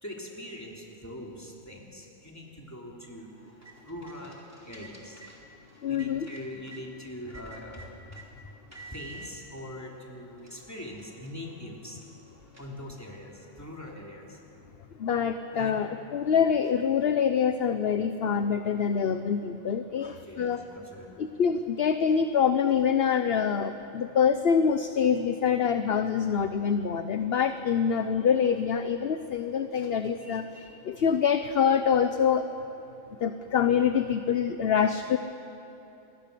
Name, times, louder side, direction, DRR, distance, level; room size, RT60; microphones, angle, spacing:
voice 1, 0.0-3.3 3.8-4.4 4.7-5.2 5.9-8.5 8.9-12.0 12.6-14.4 15.5-15.7 20.2-21.2, left 1 dB, 10° left, -2 dB, 3.3 m, -42 dB
sound 1, 3.4-6.8 7.3-8.3 8.7-9.3 10.0-10.1 10.4-13.2, right 3 dB, 10° right, 3.1 m, -51 dB
voice 2, 5.8-6.3 15.0-20.6 21.2-32.5 33.2-35.2, left 7 dB, 50° left, 9 dB, 0.9 m, -25 dB
27.5 x 21.5 x 6.8 m, 2.9 s
omnidirectional pair, 1.4 m